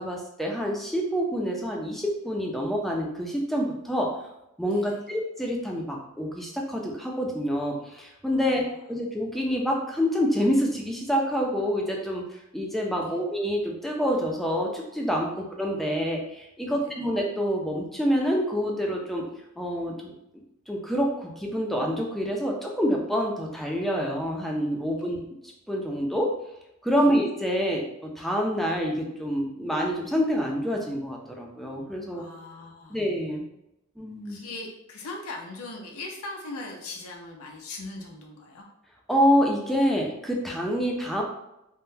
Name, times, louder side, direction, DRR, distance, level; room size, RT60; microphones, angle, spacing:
voice 1, 0.0-4.1 4.6-19.3 19.6-25.2 25.7-26.3 26.8-32.3 32.9-33.4 34.0-34.4 39.1-41.2, equal, ahead, -1 dB, 0.4 m, -27 dB
voice 2, 4.6-5.0 8.3-8.8 13.0-13.3 15.3-15.4 16.6-16.9 24.8-25.2 26.9-27.1 32.1-33.0 34.2-38.7 40.7-40.9, left 2 dB, 80° left, 0 dB, 0.6 m, -40 dB
3.6 x 2.1 x 2.6 m, 0.85 s
head